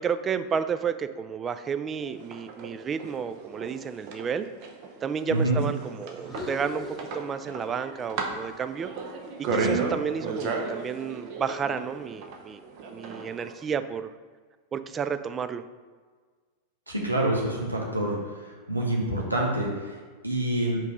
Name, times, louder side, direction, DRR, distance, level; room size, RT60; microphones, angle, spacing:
voice 1, 0.0-4.5 5.0-8.9 9.4-12.6 12.9-14.1 14.7-15.6, right 6 dB, 20° right, 11 dB, 0.3 m, -31 dB
sound 1, 2.0-13.6, right 4 dB, 45° right, 0.8 m, -34 dB
voice 2, 5.3-5.6 9.5-9.8 16.9-18.2 18.4-19.7 20.2-20.8, right 1 dB, 85° right, -2 dB, 1.0 m, -26 dB
sound 2, 6.1-7.9 8.2-10.4, left 2 dB, 15° left, 1.0 m, -43 dB
5.2 x 3.7 x 5.1 m, 1.5 s
figure-of-eight pair, 90°, 0 cm